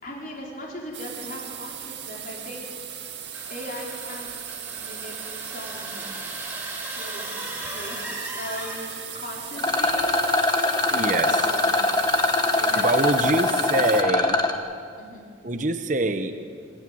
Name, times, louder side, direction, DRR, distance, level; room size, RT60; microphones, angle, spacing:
voice 1, 0.0-3.1 3.5-4.4 4.7-6.1 6.8-7.2 7.6-8.8 9.1-10.6 10.9-11.7 12.6-13.1 13.5-15.2, left 1 dB, 45° left, -3 dB, 4.4 m, -39 dB
sound 1, 0.9-14.0, right 9 dB, 65° right, 1.8 m, -37 dB
sound 2, 3.3-9.3, equal, 10° right, 3.9 m, -38 dB
Rattle, 9.6-14.5, left 2 dB, 20° left, 1.2 m, -22 dB
voice 2, 10.9-11.4 12.8-14.4 15.4-16.4, right 2 dB, 40° right, 8 dB, 0.9 m, -25 dB
25.5 x 11.0 x 9.2 m, 2.2 s
head